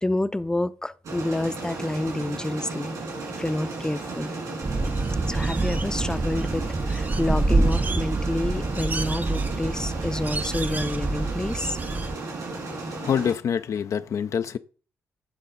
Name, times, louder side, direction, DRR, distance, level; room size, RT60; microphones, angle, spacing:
voice 1, 0.0-2.9 3.4-4.4 5.3-11.8, left 1 dB, 10° left, 0.5 m, -29 dB
sound 1, 1.0-13.3, right 3 dB, 70° right, 4.3 m, -34 dB
sound 2, 4.6-12.1, right 3 dB, 30° right, 0.6 m, -26 dB
voice 2, 13.0-14.6, left 8 dB, 60° left, 0.4 m, -26 dB
10.5 x 4.0 x 3.8 m
hypercardioid pair, 40°, 6 cm